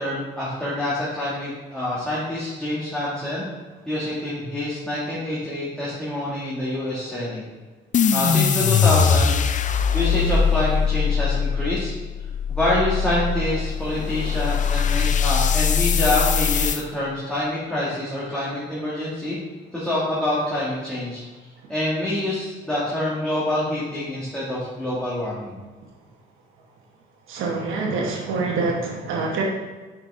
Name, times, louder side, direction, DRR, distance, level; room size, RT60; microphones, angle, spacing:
voice 1, 0.0-3.5 3.9-7.4 8.1-9.5 9.9-11.9 12.5-19.4 19.7-21.2 21.7-25.6, left 1 dB, 5° left, -9 dB, 1.9 m, -26 dB
sound 1, 7.9-16.8, left 7 dB, 40° left, 0.4 m, -21 dB
voice 2, 27.3-29.4, right 3 dB, 85° right, -1 dB, 1.0 m, -25 dB
5.9 x 5.1 x 3.6 m, 1.3 s
cardioid pair, 90°, 20 cm